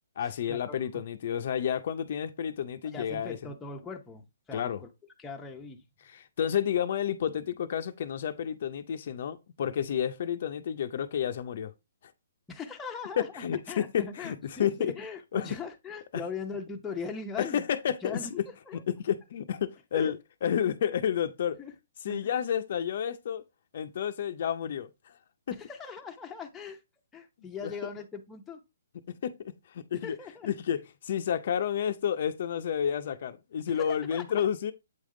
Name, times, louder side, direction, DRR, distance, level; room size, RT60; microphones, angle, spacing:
voice 1, 0.2-3.5 4.5-4.8 6.0-11.7 12.0-12.1 13.2-14.9 15.3-15.5 17.4-18.2 18.9-20.2 20.4-21.6 22.0-23.4 23.7-25.2 25.5-25.6 27.4-27.7 29.1-30.2 30.4-34.7, left 9 dB, 50° left, 0.6 m, -30 dB
voice 2, 2.9-4.9 5.2-5.8 12.5-17.6 18.0-18.3 18.7-18.8 19.9-20.1 21.6-21.7 22.0-22.4 25.6-26.8 27.1-28.6 30.0-30.5 33.7-34.5, left 5 dB, 10° left, 0.8 m, -40 dB
8.1 x 3.5 x 3.8 m
hypercardioid pair, 160°, 0 cm